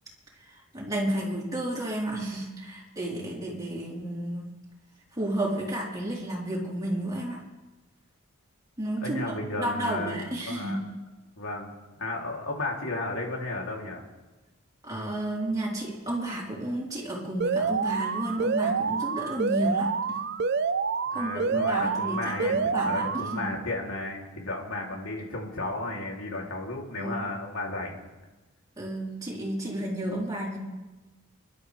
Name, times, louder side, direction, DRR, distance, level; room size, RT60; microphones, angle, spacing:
voice 1, 0.5-4.5 5.1-7.4 8.8-10.8 14.8-20.2 21.1-23.0 23.3-23.5 27.0-27.3 28.8-30.6, right 1 dB, 15° right, -5 dB, 4.2 m, -32 dB
voice 2, 9.0-10.2 10.4-10.8 11.4-14.0 21.1-28.1, left 2 dB, 85° left, -1 dB, 3.3 m, -34 dB
Alarm, 17.4-23.4, right 5 dB, 50° right, 0.5 m, -28 dB
26.0 x 12.0 x 3.5 m, 1.2 s
head